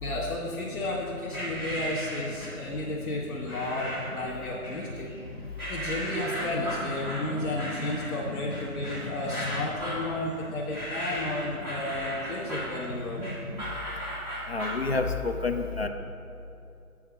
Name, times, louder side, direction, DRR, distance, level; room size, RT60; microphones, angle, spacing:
voice 1, 0.0-5.1 5.7-13.2, left 2 dB, 75° left, -7 dB, 1.7 m, -33 dB
sound 1, 1.3-2.7 3.5-4.2 4.6-5.2 5.6-14.9, equal, 10° right, 1.7 m, -36 dB
voice 2, 14.5-15.9, left 3 dB, 45° left, 5 dB, 0.5 m, -28 dB
8.6 x 3.5 x 6.3 m, 2.6 s
figure-of-eight pair, 160°, 44 cm